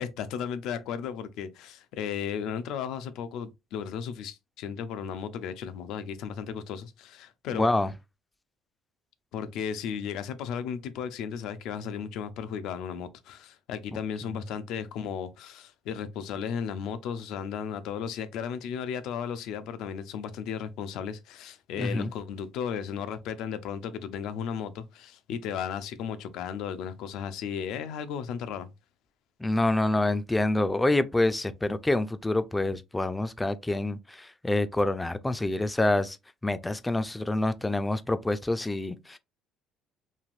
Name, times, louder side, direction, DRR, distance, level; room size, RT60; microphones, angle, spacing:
voice 1, 0.0-7.7 9.3-28.7, left 7 dB, 75° left, 0.4 m, -35 dB
voice 2, 7.5-7.9 13.9-14.0 21.8-22.1 29.4-36.2 36.4-39.2, left 2 dB, 10° left, 0.3 m, -27 dB
3.2 x 2.5 x 2.4 m
cardioid pair, 105°, 0 cm